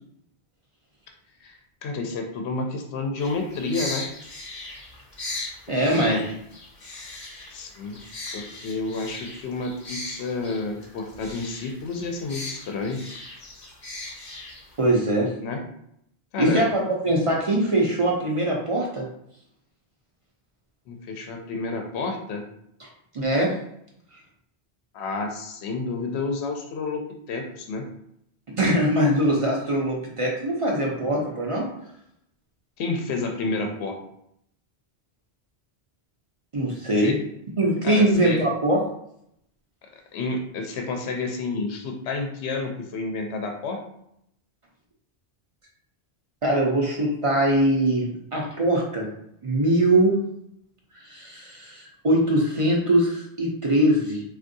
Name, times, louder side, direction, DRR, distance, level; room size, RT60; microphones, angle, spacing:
voice 1, 1.4-4.1 5.9-6.2 7.5-8.0 8.3-13.0 15.4-15.6 16.3-16.6 20.9-22.4 24.9-27.0 27.3-27.8 32.8-34.0 37.0-37.1 37.8-38.4 40.1-43.8, left 3 dB, 80° left, 3 dB, 0.8 m, -30 dB
sound 1, 3.2-14.9, left 2 dB, 45° left, 0.9 m, -38 dB
voice 2, 5.7-6.3 14.8-15.3 16.4-19.1 23.1-23.5 28.5-31.7 36.5-37.2 37.6-38.8 46.4-49.1 49.4-50.2 51.0-54.2, right 1 dB, 40° right, -2 dB, 0.5 m, -22 dB
3.4 x 2.4 x 2.6 m, 0.74 s
omnidirectional pair, 1.1 m